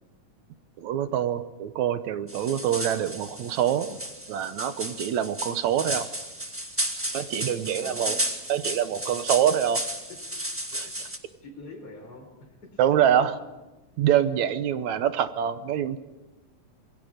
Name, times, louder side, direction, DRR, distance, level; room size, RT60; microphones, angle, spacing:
voice 1, 0.8-4.0 4.3-6.1 7.1-8.2 8.5-9.8 10.7-10.9 12.8-13.3 14.0-16.0, right 10 dB, 75° right, 11 dB, 2.2 m, -25 dB
sound 1, 2.3-11.2, right 1 dB, 5° right, 1.0 m, -33 dB
voice 2, 7.4-8.2 10.1-10.2 10.8-11.0 11.4-12.8, left 3 dB, 30° left, -2 dB, 4.8 m, -45 dB
27.5 x 21.5 x 5.1 m, 1.1 s
omnidirectional pair, 3.5 m